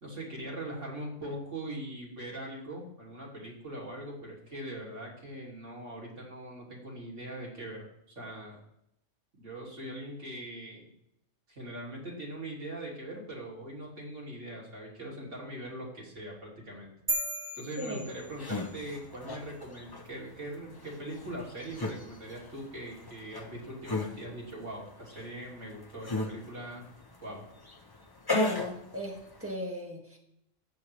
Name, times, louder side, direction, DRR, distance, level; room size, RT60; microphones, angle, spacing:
voice 1, 0.0-8.6 9.4-10.9 11.5-17.2 17.5-26.9 27.2-27.4, right 1 dB, 75° right, -3 dB, 3.1 m, -41 dB
sound 1, 17.1-18.8, right 1 dB, 25° right, 1.2 m, -35 dB
sound 2, 18.1-29.5, left 2 dB, 20° left, 0.7 m, -37 dB
voice 2, 28.3-30.2, equal, 10° right, 0 dB, 1.8 m, -37 dB
13.5 x 8.4 x 3.2 m, 0.78 s
omnidirectional pair, 1.3 m